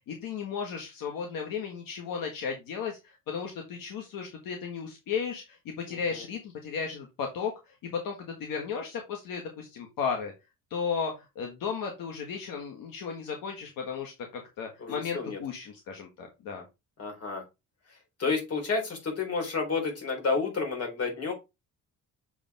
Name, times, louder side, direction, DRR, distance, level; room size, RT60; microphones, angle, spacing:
voice 1, 0.1-10.3 10.7-16.6, left 6 dB, 75° left, 2 dB, 1.7 m, -35 dB
voice 2, 5.9-6.2 14.8-15.4 17.0-17.4 18.2-21.3, left 4 dB, 45° left, 2 dB, 3.9 m, -30 dB
6.8 x 5.1 x 3.5 m, 0.24 s
cardioid pair, 120°, 34 cm